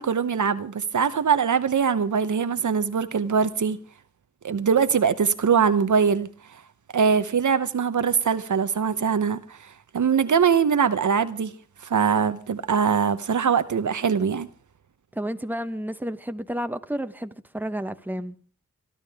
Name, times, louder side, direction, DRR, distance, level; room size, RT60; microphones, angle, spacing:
voice 1, 0.0-3.8 4.4-6.3 6.9-11.5 11.8-14.5, right 6 dB, 75° right, 0.9 m, -22 dB
voice 2, 15.1-18.4, equal, 5° right, 1.0 m, -31 dB
29.0 x 12.0 x 3.5 m
wide cardioid pair, 60°, 30 cm